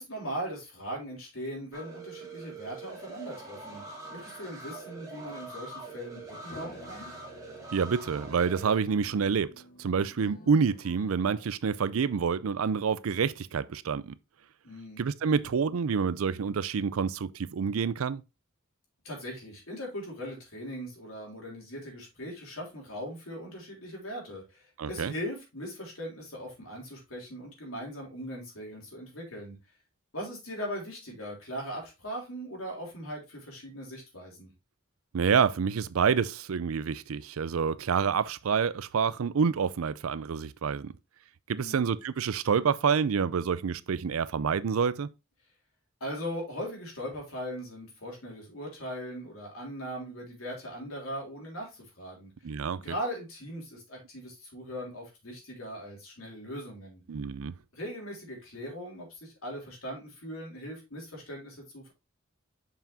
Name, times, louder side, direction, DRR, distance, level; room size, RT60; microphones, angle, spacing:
voice 1, 0.0-3.8 4.1-7.1 14.6-15.0 19.0-29.6 30.1-34.5 41.6-41.9 46.0-52.3 52.8-57.0 57.7-61.9, equal, 80° left, 3.5 m, -39 dB
sound 1, 1.7-8.8, right 3 dB, 15° right, 1.8 m, -44 dB
sound 2, 6.5-11.5, left 2 dB, 45° left, 0.6 m, -51 dB
voice 2, 7.7-9.5 9.8-14.2 15.0-18.2 24.8-25.1 35.1-40.9 41.5-45.1 52.4-52.8 57.1-57.5, right 6 dB, 85° right, 0.5 m, -28 dB
7.0 x 5.7 x 2.7 m
head